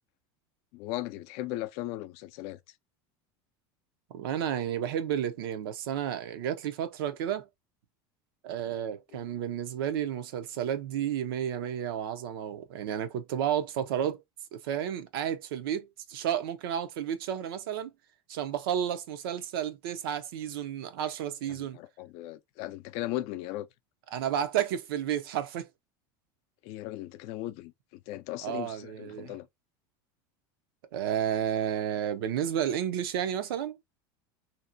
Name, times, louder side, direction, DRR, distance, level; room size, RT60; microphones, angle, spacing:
voice 1, 0.7-2.6 9.1-9.2 21.5-23.7 26.6-27.7 28.1-29.5, left 16 dB, 60° left, 0.4 m, -37 dB
voice 2, 4.1-7.5 8.4-14.2 14.5-17.9 18.3-21.8 24.1-25.7 28.4-29.3 30.9-33.8, right 9 dB, 85° right, 0.5 m, -32 dB
2.6 x 2.1 x 2.6 m
supercardioid pair, 120°, 12 cm